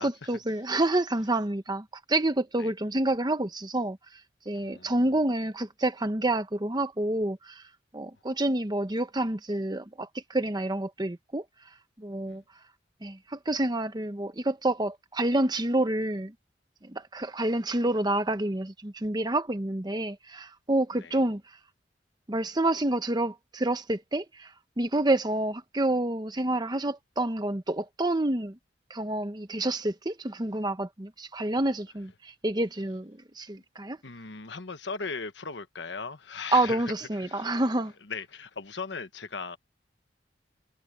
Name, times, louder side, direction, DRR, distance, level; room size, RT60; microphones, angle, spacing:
voice 1, 0.0-4.0 4.5-7.6 7.9-11.4 12.0-12.4 13.0-16.3 16.8-21.4 22.3-24.5 24.8-28.5 28.9-34.0 36.5-37.9, right 1 dB, 25° right, 1.0 m, -28 dB
voice 2, 4.5-5.0 12.3-12.4 21.0-21.2 34.0-37.7 38.1-39.6, left 4 dB, 80° left, 1.2 m, -38 dB
head